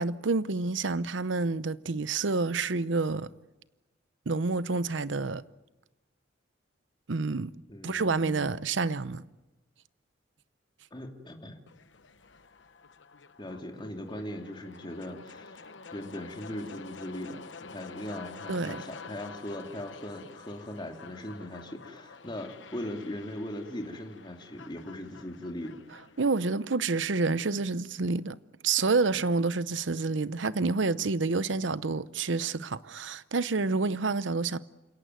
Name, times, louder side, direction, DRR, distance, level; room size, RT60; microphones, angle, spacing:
voice 1, 0.0-3.3 4.3-5.4 7.1-7.5 7.8-9.2 18.5-18.8 26.2-28.4 28.6-34.6, right 3 dB, 90° right, 0.8 m, -28 dB
voice 2, 7.7-8.6 10.9-11.6 13.4-25.8, left 1 dB, 25° left, 2.8 m, -39 dB
sound 1, 11.7-27.7, left 5 dB, 80° left, 1.1 m, -49 dB
28.5 x 17.5 x 9.3 m
head